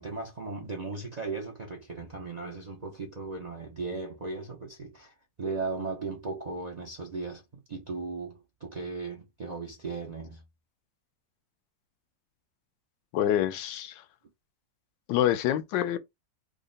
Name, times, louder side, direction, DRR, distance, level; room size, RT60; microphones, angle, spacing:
voice 1, 0.0-7.4 7.7-10.4, right 4 dB, 70° right, 0.3 m, -37 dB
voice 2, 13.1-14.0 15.1-16.0, left 11 dB, 85° left, 1.3 m, -26 dB
3.8 x 2.1 x 3.8 m
omnidirectional pair, 2.0 m